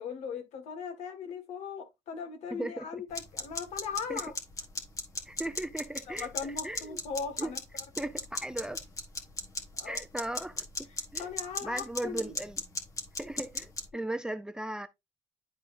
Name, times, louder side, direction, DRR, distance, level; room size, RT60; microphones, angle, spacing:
voice 1, 0.0-4.3 6.1-7.6 9.7-10.0 10.9-12.3, left 6 dB, 70° left, 1.8 m, -39 dB
voice 2, 2.5-3.0 4.1-4.2 5.3-7.0 7.4-7.6 8.0-8.8 9.8-11.3 11.6-12.6 13.2-14.9, right 1 dB, 5° right, 0.5 m, -37 dB
sound 1, 3.1-13.9, left 3 dB, 30° left, 1.4 m, -39 dB
10.5 x 4.2 x 2.6 m
cardioid pair, 115°, 12 cm